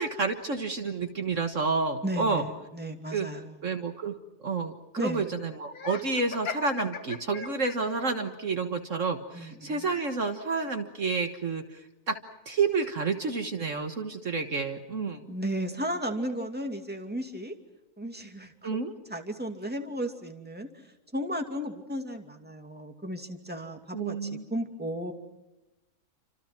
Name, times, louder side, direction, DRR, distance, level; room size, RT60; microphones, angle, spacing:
voice 1, 0.0-2.4 3.1-3.3 3.6-4.1 4.4-11.8 12.1-12.2 12.5-15.4 18.6-18.9 23.9-24.4, right 4 dB, 55° right, 6 dB, 1.8 m, -30 dB
voice 2, 2.0-3.6 5.0-5.3 9.3-9.9 15.3-17.6 18.0-18.8 19.1-20.7 21.1-25.1, right 1 dB, 5° right, 4 dB, 2.5 m, -34 dB
Laughter, 5.7-8.0, left 5 dB, 70° left, 2.1 m, -38 dB
29.5 x 26.5 x 6.0 m, 0.95 s
omnidirectional pair, 1.6 m